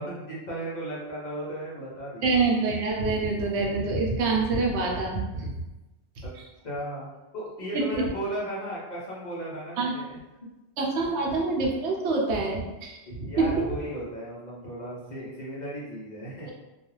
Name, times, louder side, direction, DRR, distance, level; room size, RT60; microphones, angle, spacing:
voice 1, 0.0-2.4 6.2-6.3 6.6-7.1 7.3-10.2 13.3-16.5, right 1 dB, 45° left, -6 dB, 0.7 m, -35 dB
voice 2, 2.2-5.5 6.3-6.4 7.7-8.0 9.8-10.0 10.8-13.6, right 3 dB, 80° right, -1 dB, 0.9 m, -26 dB
2.4 x 2.2 x 3.0 m, 1.0 s
omnidirectional pair, 1.2 m